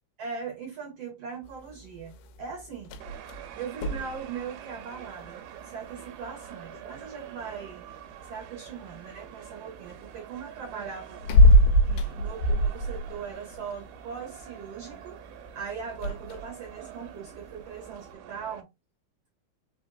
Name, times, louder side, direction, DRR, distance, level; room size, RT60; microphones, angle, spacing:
voice 1, 0.2-2.9 3.3-7.8 8.2-11.2 11.8-18.7, right 6 dB, 70° right, 1.5 m, -40 dB
sound 1, 1.4-18.1, left 1 dB, 90° left, 2.6 m, -28 dB
sound 2, 3.0-18.6, right 10 dB, 90° right, 2.5 m, -46 dB
5.2 x 4.0 x 2.4 m
omnidirectional pair, 4.4 m